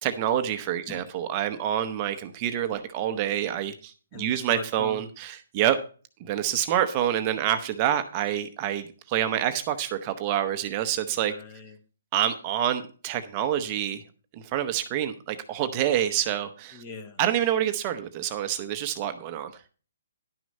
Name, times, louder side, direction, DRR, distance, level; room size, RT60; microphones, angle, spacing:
voice 1, 0.0-5.8 6.2-11.3 12.1-14.0 14.5-16.8 17.2-19.5, right 11 dB, 25° right, 7 dB, 0.7 m, -27 dB
voice 2, 4.1-5.0 11.1-11.8 16.7-17.2, left 4 dB, 20° left, 9 dB, 1.1 m, -41 dB
11.0 x 6.2 x 5.3 m, 0.36 s
hypercardioid pair, 165°, 0 cm